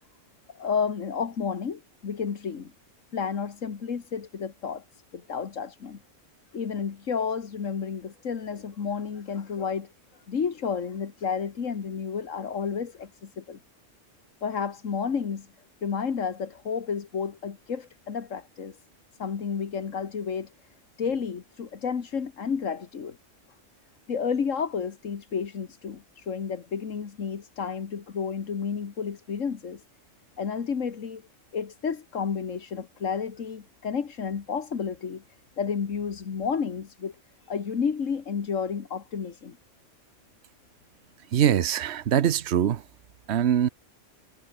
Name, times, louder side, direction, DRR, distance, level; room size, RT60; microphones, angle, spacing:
voice 1, 0.5-2.7 3.1-6.0 6.5-9.9 10.3-13.6 14.4-15.5 15.8-18.8 19.2-20.5 21.0-23.2 24.1-29.8 30.4-31.2 31.5-35.2 35.6-37.1 37.5-39.6, left 6 dB, 90° left, 1.9 m, -31 dB
voice 2, 41.3-42.8 43.3-43.7, right 9 dB, 60° right, 1.1 m, -23 dB
omnidirectional pair, 1.3 m